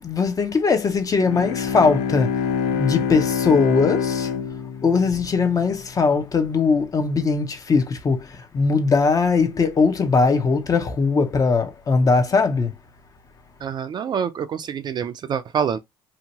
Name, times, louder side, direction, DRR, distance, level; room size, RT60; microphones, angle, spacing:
voice 1, 0.0-2.4 2.7-4.3 4.8-12.8, left 4 dB, 30° left, 0.6 m, -20 dB
Bowed string instrument, 1.1-5.9, left 6 dB, 75° left, 0.5 m, -26 dB
voice 2, 13.6-15.8, right 7 dB, 40° right, 0.4 m, -26 dB
2.8 x 2.2 x 2.8 m
supercardioid pair, 80°, 11 cm